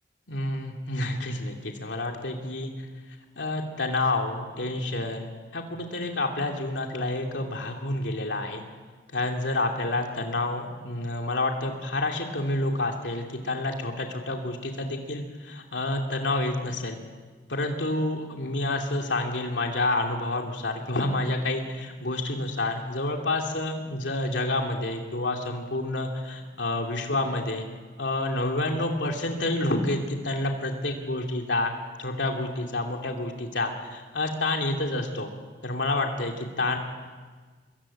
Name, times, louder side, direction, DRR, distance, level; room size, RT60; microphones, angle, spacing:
voice 1, 0.3-2.7 3.4-8.6 9.1-17.0 17.5-27.6 28.0-31.7 32.0-35.3 35.6-36.8, left 2 dB, 90° left, 2 dB, 2.7 m, -29 dB
24.0 x 22.5 x 8.9 m, 1.5 s
head